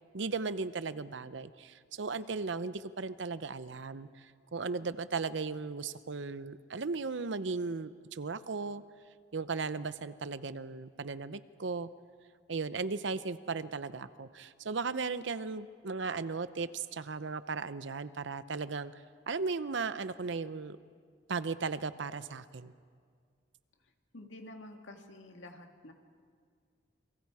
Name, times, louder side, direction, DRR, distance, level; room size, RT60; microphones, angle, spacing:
voice 1, 0.1-8.8 9.3-11.9 12.5-18.9 19.3-20.8 21.3-22.7, right 4 dB, 70° right, 14 dB, 0.7 m, -36 dB
voice 2, 24.1-25.9, left 1 dB, 80° left, 4 dB, 2.1 m, -49 dB
29.0 x 22.5 x 4.8 m, 2.1 s
head